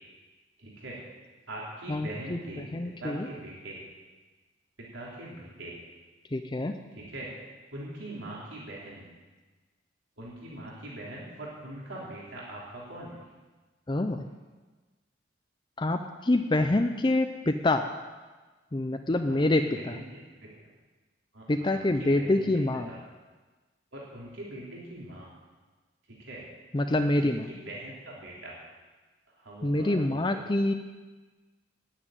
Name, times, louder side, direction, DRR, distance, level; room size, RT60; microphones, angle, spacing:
voice 1, 0.6-1.0 1.5-3.8 4.9-5.7 6.9-7.3 7.7-9.0 10.2-13.2 19.2-20.6 21.3-23.0 23.9-25.3 26.2-26.4 27.2-28.5 29.3-30.5, right 1 dB, 80° right, -5 dB, 3.4 m, -42 dB
voice 2, 1.9-2.4 2.7-3.3 6.3-6.7 13.9-14.3 15.8-17.9 18.7-19.6 19.9-20.0 21.5-22.9 26.7-27.5 29.6-30.7, left 2 dB, 25° left, 7 dB, 0.5 m, -26 dB
10.0 x 9.8 x 9.1 m, 1.3 s
head